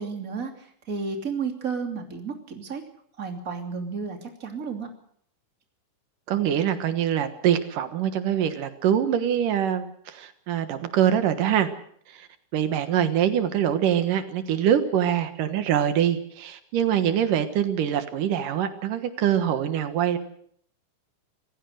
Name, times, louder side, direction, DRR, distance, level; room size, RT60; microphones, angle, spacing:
voice 1, 0.0-2.8 3.2-4.9, right 5 dB, 25° right, 4 dB, 3.1 m, -32 dB
voice 2, 6.3-11.7 12.1-12.3 12.5-20.2, right 9 dB, 85° right, 10 dB, 3.0 m, -24 dB
27.5 x 15.5 x 6.5 m, 0.64 s
omnidirectional pair, 3.7 m